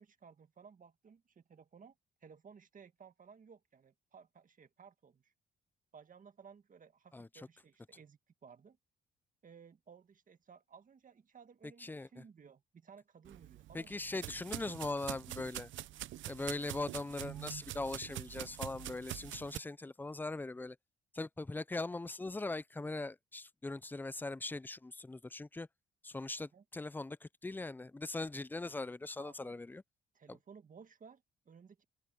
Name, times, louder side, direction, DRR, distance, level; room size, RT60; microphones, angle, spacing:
voice 1, 0.0-5.3 5.9-8.8 9.4-14.3 26.4-26.6 29.2-29.6 30.1-31.8, right 6 dB, 40° right, 1.8 m, -58 dB
voice 2, 11.8-12.2 13.7-15.7 16.3-20.8 21.1-25.7 26.0-29.8 30.3-30.4, left 2 dB, 10° left, 0.4 m, -40 dB
sound 1, 13.2-19.6, right 14 dB, 70° right, 0.6 m, -45 dB
open air
cardioid pair, 90°, 20 cm